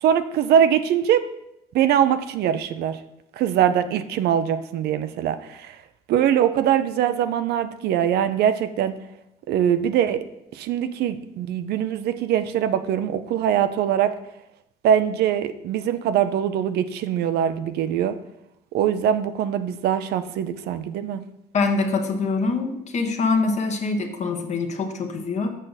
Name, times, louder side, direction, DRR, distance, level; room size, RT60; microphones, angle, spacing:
voice 1, 0.0-1.3 1.7-3.0 3.4-5.7 6.1-8.9 9.5-10.2 10.5-14.1 14.8-18.2 18.7-21.2, right 9 dB, 75° right, 11 dB, 0.6 m, -22 dB
voice 2, 21.5-25.5, left 3 dB, 45° left, 5 dB, 1.1 m, -24 dB
6.6 x 6.4 x 4.0 m, 0.83 s
cardioid pair, 110°, 17 cm